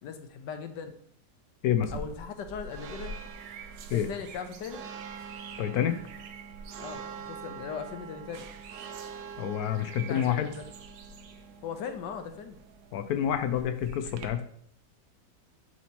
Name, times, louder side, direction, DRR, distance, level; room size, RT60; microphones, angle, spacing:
voice 1, 0.0-0.9 1.9-3.1 3.9-4.8 6.8-8.5 10.1-10.7 11.6-12.6, left 6 dB, 90° left, 7 dB, 1.4 m, -39 dB
sound 1, 1.8-14.3, right 5 dB, 75° right, 1.3 m, -43 dB
voice 2, 5.6-5.9 9.4-10.5 12.9-14.4, left 10 dB, 70° left, 9 dB, 1.0 m, -28 dB
7.0 x 6.1 x 2.9 m, 0.64 s
omnidirectional pair, 1.8 m